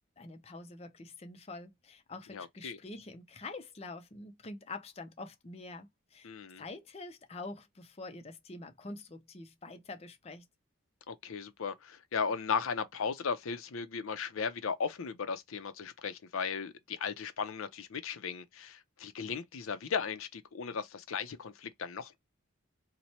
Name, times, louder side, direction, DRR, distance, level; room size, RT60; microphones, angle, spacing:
voice 1, 0.2-6.3 6.6-10.5, left 2 dB, 30° left, 0.5 m, -46 dB
voice 2, 2.3-2.8 6.2-6.6 11.1-22.2, left 6 dB, 90° left, 0.6 m, -36 dB
2.9 x 2.1 x 4.2 m
head